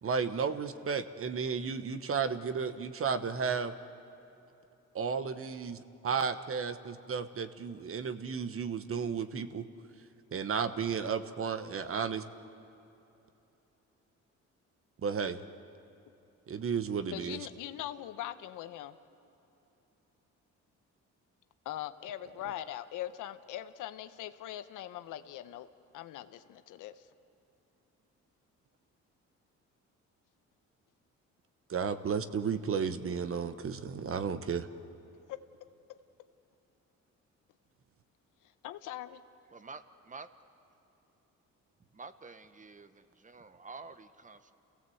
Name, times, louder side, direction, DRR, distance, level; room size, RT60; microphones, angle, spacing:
voice 1, 0.0-3.7 4.9-9.6 10.3-12.2 15.0-15.4 16.5-17.4 31.7-34.7, right 6 dB, 45° right, 11 dB, 1.2 m, -33 dB
voice 2, 17.1-19.0 21.6-25.7 25.9-27.0 35.3-35.4 35.9-36.0 38.6-39.2, left 12 dB, 90° left, 11 dB, 0.9 m, -41 dB
voice 3, 39.5-40.3 41.9-44.5, right 4 dB, 25° right, 11 dB, 1.1 m, -49 dB
29.0 x 16.5 x 7.9 m, 2.9 s
cardioid pair, 90°, 30 cm